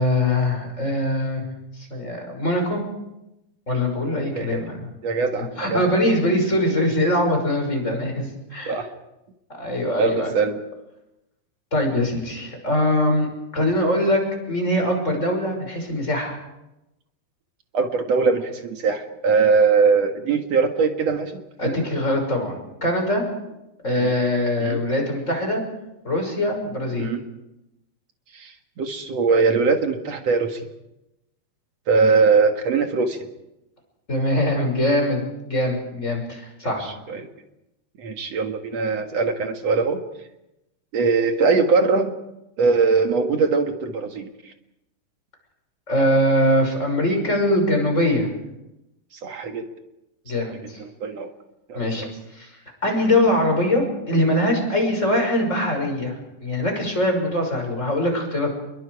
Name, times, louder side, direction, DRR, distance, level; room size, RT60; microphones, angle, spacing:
voice 1, 0.0-1.4 1.8-2.8 3.7-4.8 5.4-8.8 9.5-10.3 11.7-13.3 13.5-16.4 21.6-22.5 22.8-23.2 23.8-25.6 26.0-27.1 34.1-36.9 45.9-48.3 50.3-50.8 51.7-52.0 52.3-52.5 52.8-58.5, left 1 dB, 15° left, 3 dB, 6.2 m, -22 dB
voice 2, 4.3-4.6 5.0-5.8 8.7-8.9 10.0-10.6 17.7-21.8 24.0-24.1 24.6-24.8 27.0-27.2 28.3-30.6 31.9-33.2 36.8-37.3 38.0-40.0 40.9-42.1 42.6-44.3 49.2-49.7 50.8-51.3 51.7-52.1, right 4 dB, 50° right, 5 dB, 2.1 m, -21 dB
28.5 x 23.0 x 4.9 m, 0.91 s
omnidirectional pair, 4.9 m